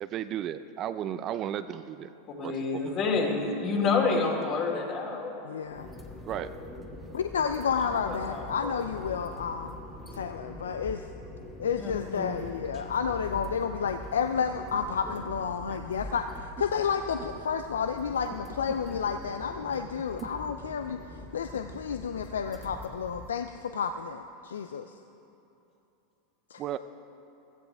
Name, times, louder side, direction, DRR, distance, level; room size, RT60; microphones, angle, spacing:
voice 1, 0.0-2.1 2.4-2.9 6.3-6.5 15.7-15.8 26.6-26.8, right 10 dB, 40° right, 12 dB, 0.5 m, -34 dB
voice 2, 2.3-5.3 7.9-8.7 11.8-12.4, left 4 dB, 45° left, -1 dB, 2.7 m, -29 dB
voice 3, 5.4-5.9 7.1-9.8 10.1-11.1 11.6-25.0 26.5-26.6, left 6 dB, 85° left, 8 dB, 0.4 m, -31 dB
sound 1, 5.7-23.3, left 2 dB, 10° left, 1.4 m, -44 dB
15.5 x 14.5 x 3.5 m, 2.8 s
hypercardioid pair, 95°, 0 cm